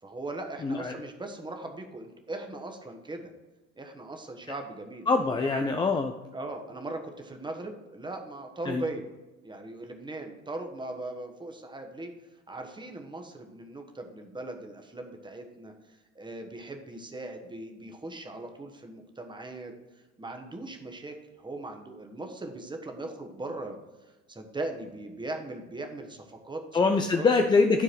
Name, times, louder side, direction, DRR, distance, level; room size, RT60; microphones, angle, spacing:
voice 1, 0.0-3.3 3.8-5.1 5.4-5.7 6.3-9.0 9.4-12.1 12.5-19.7 20.2-23.8 24.3-27.3, right 2 dB, 10° right, 4 dB, 1.3 m, -39 dB
voice 2, 0.6-0.9 5.1-6.1 8.7-8.8 26.7-27.8, left 4 dB, 10° left, 5 dB, 0.4 m, -24 dB
13.0 x 4.7 x 4.5 m, 1.1 s
figure-of-eight pair, 65°, 42 cm